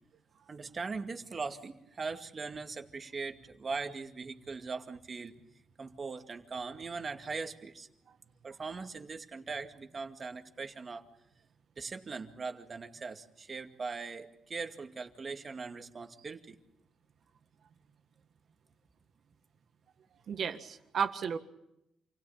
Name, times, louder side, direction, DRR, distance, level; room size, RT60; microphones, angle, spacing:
voice 1, 0.5-5.3 5.8-7.9 8.4-11.1 11.8-16.6, right 4 dB, 40° right, 5 dB, 2.2 m, -40 dB
voice 2, 20.3-21.4, right 7 dB, 60° right, 8 dB, 1.7 m, -33 dB
28.5 x 17.0 x 8.8 m, 0.86 s
cardioid pair, 75°, 0 cm